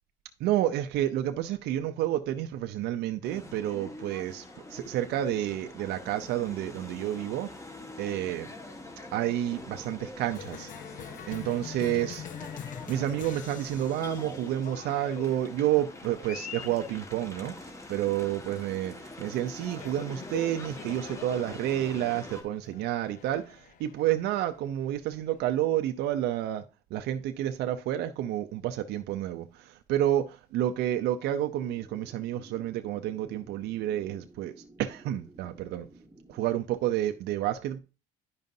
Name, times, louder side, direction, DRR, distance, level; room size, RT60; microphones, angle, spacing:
voice 1, 0.4-8.5 9.1-10.7 11.3-12.3 12.9-26.6 26.9-35.9 36.3-37.8, right 12 dB, 80° right, 0.6 m, -30 dB
sound 1, 3.2-22.4, left 2 dB, 15° left, 1.5 m, -45 dB
Cheering, 10.3-25.5, left 9 dB, 50° left, 0.6 m, -45 dB
sound 2, 31.5-36.6, right 1 dB, 15° right, 1.2 m, -54 dB
10.5 x 5.3 x 2.6 m
cardioid pair, 110°, 17 cm